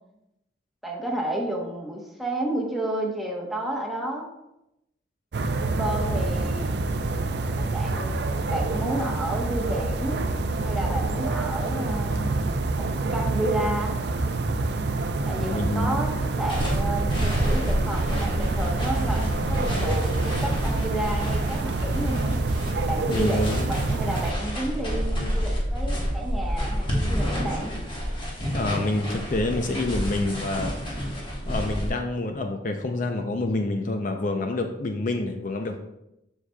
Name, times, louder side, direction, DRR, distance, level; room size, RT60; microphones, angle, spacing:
voice 1, 0.8-4.3 5.6-6.6 7.7-8.2 8.5-10.3 10.6-12.3 12.7-14.0 15.2-22.4 22.9-27.7 31.2-31.3, right 1 dB, ahead, -2 dB, 1.0 m, -31 dB
sound 1, 5.3-24.3, right 2 dB, 65° right, 0.5 m, -27 dB
voice 2, 15.2-16.0 19.4-19.9 23.1-23.9 28.5-30.7 31.5-35.8, left 2 dB, 45° left, 5 dB, 0.5 m, -28 dB
sound 2, 16.5-31.9, equal, 25° left, 1.3 m, -29 dB
7.3 x 6.5 x 2.3 m, 0.86 s
head